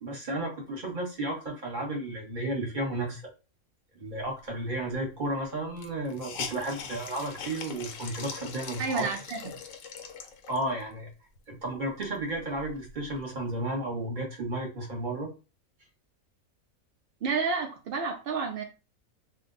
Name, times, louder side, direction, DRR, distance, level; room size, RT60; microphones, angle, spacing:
voice 1, 0.0-3.2 4.0-9.1 10.5-11.1 11.5-15.3, right 1 dB, 40° right, 1.1 m, -33 dB
Hiss, 4.9-5.0 5.2-5.3 5.8-10.8 11.4-11.5 11.8-13.2, left 6 dB, 75° left, 1.0 m, -42 dB
voice 2, 8.8-9.4 17.2-18.6, right 4 dB, 70° right, 0.5 m, -30 dB
2.6 x 2.2 x 3.6 m
omnidirectional pair, 1.4 m